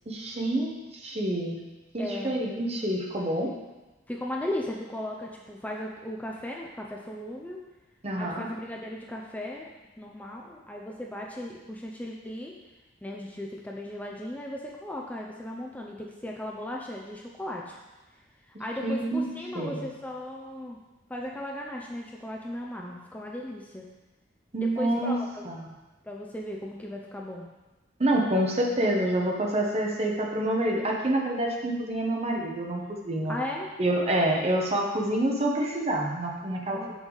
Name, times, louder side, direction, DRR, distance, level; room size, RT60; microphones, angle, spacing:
voice 1, 0.1-1.6 1.9-3.5 8.0-8.4 18.8-19.3 19.5-19.8 24.5-25.1 25.4-25.7 28.0-33.4 33.8-36.8, right 1 dB, 35° right, 0 dB, 1.1 m, -27 dB
voice 2, 2.0-2.4 4.1-7.6 8.2-9.7 10.0-12.5 13.0-17.8 18.2-20.8 21.1-23.8 24.6-25.5 26.0-27.5 33.3-33.7 36.7-36.9, left 1 dB, 10° left, -1 dB, 0.5 m, -36 dB
6.8 x 6.1 x 4.0 m, 1.1 s
head